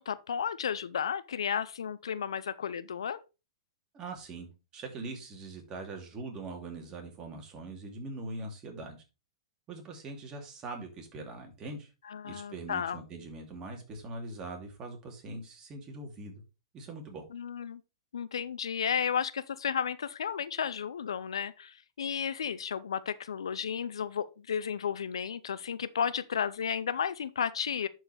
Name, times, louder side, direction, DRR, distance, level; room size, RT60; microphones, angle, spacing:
voice 1, 0.0-3.2 12.1-13.0 17.3-17.8 18.1-27.9, left 7 dB, 75° left, 0.6 m, -33 dB
voice 2, 3.9-9.0 9.7-11.9 12.2-16.4 16.7-17.3, right 2 dB, 25° right, 2.7 m, -42 dB
11.0 x 4.8 x 3.4 m
hypercardioid pair, 115°, 3 cm